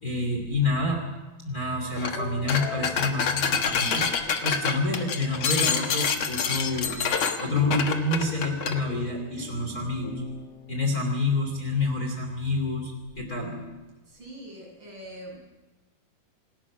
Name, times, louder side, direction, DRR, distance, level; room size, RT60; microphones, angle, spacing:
voice 1, 0.0-1.1 1.4-7.0 7.4-10.2 10.7-13.6, left 2 dB, 25° left, 2 dB, 2.6 m, -28 dB
sound 1, 2.0-2.2 2.5-8.8, left 6 dB, 70° left, 1.2 m, -27 dB
sound 2, 2.1-4.5 5.0-6.0 7.6-13.7, left 6 dB, 55° left, 2.9 m, -44 dB
voice 2, 14.0-15.4, right 1 dB, 30° right, -2 dB, 8.2 m, -43 dB
28.0 x 19.0 x 6.1 m, 1.1 s
omnidirectional pair, 4.6 m